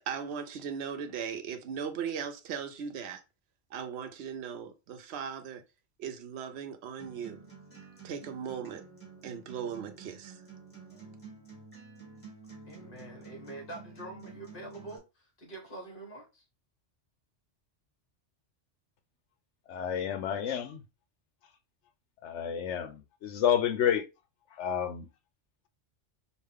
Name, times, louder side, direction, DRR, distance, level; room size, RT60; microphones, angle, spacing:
voice 1, 0.0-3.2 3.7-5.6 6.0-7.4 8.0-8.9 9.2-10.4, right 7 dB, 65° right, 0.9 m, -38 dB
Acoustic guitar, 7.0-15.0, right 4 dB, 10° left, 1.8 m, -50 dB
voice 2, 12.6-16.4, right 2 dB, 45° left, 1.7 m, -45 dB
voice 3, 19.7-20.8 22.2-24.1 24.5-25.1, left 9 dB, 80° left, 1.0 m, -30 dB
5.0 x 2.4 x 3.5 m
omnidirectional pair, 1.2 m